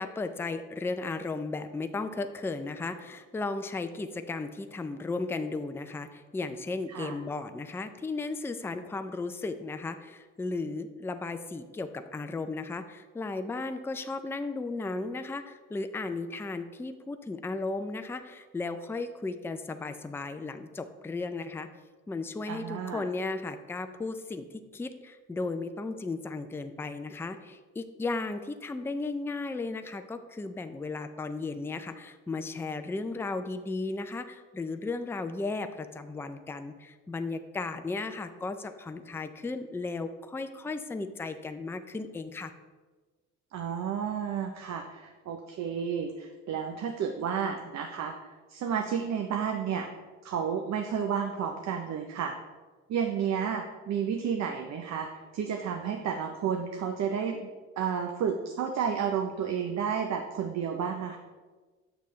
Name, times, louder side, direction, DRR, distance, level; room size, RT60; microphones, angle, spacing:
voice 1, 0.0-21.7 22.1-42.5, left 3 dB, 10° left, 9 dB, 0.4 m, -35 dB
voice 2, 22.5-23.1 43.5-49.9 50.2-52.4 52.9-55.1 55.3-57.5 57.8-61.2, right 7 dB, 60° right, 5 dB, 0.6 m, -31 dB
6.9 x 6.6 x 3.1 m, 1.3 s
cardioid pair, 90°, 30 cm